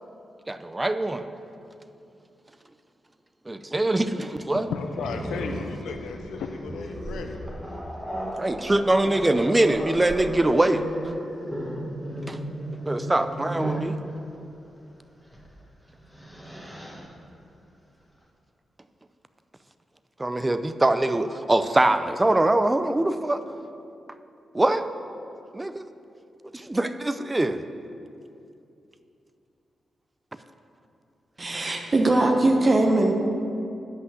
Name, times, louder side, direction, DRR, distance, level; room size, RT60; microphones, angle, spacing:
voice 1, 0.5-1.3 3.5-4.7 8.4-10.8 12.3-12.4 12.9-14.0 20.2-23.4 24.5-24.9 25.5-25.8 26.5-27.6, right 1 dB, 20° right, 10 dB, 0.5 m, -23 dB
voice 2, 4.7-7.4, left 5 dB, 85° left, 5 dB, 0.5 m, -34 dB
Growling, 4.9-13.9 15.3-15.5 15.9-17.0, right 1 dB, 5° right, 1.8 m, -34 dB
voice 3, 31.4-33.1, right 2 dB, 40° right, 3 dB, 1.0 m, -20 dB
8.1 x 5.6 x 7.8 m, 2.6 s
cardioid pair, 65°, 0 cm